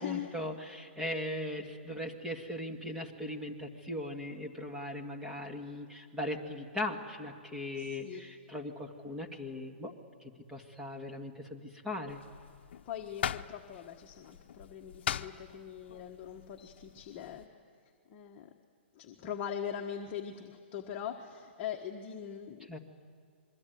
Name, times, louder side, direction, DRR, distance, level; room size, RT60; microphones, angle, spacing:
voice 1, 0.0-9.9 10.5-12.2 22.7-22.8, left 1 dB, 5° right, 2 dB, 1.9 m, -39 dB
voice 2, 7.8-8.2 12.8-17.4 18.1-18.5 18.9-22.7, left 9 dB, 30° left, 1 dB, 1.5 m, -41 dB
sound 1, 12.1-17.5, left 9 dB, 65° left, 0.8 m, -41 dB
27.0 x 22.5 x 9.4 m, 2.1 s
hypercardioid pair, 150°, 6 cm